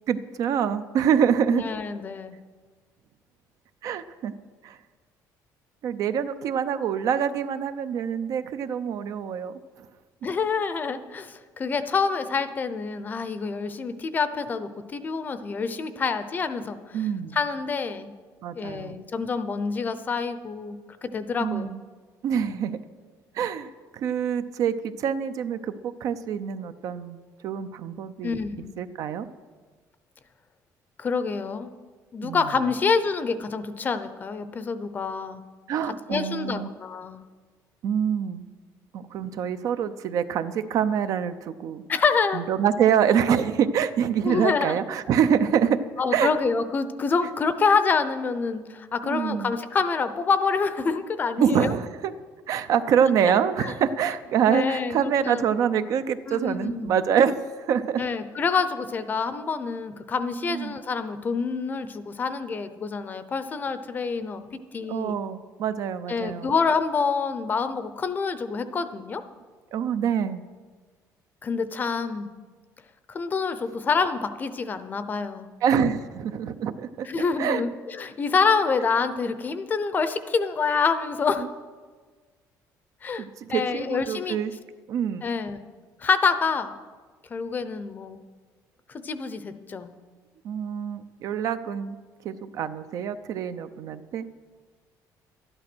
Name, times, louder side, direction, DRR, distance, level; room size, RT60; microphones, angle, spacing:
voice 1, 0.1-1.6 3.8-4.3 4.6-4.8 5.8-9.5 16.9-17.4 18.4-19.0 21.4-21.8 22.2-22.8 23.3-27.2 27.4-28.4 28.8-29.3 32.2-32.4 35.7-36.7 37.8-38.5 38.9-41.8 42.3-45.8 46.1-46.3 49.0-49.5 51.4-52.1 52.5-57.3 57.7-58.0 60.5-60.7 64.9-66.5 69.7-70.4 75.6-77.1 77.4-77.6 83.2-84.5 84.9-85.2 90.4-92.0 92.2-94.3, right 8 dB, 55° right, 11 dB, 0.6 m, -25 dB
voice 2, 1.5-2.4 10.2-17.0 17.3-18.2 18.5-21.7 28.2-28.7 31.0-31.7 32.1-35.4 36.1-37.2 39.4-39.5 41.9-42.4 44.2-44.8 46.0-51.7 53.6-53.7 54.5-55.4 56.3-57.0 58.0-64.4 64.7-65.2 66.1-69.2 71.4-72.3 73.1-75.5 77.1-81.4 83.0-83.2 83.5-84.4 85.2-85.6 86.0-86.7 87.3-88.2 88.9-89.9, left 5 dB, 25° left, 11 dB, 0.6 m, -27 dB
12.5 x 11.0 x 6.1 m, 1.5 s
cardioid pair, 165°, 7 cm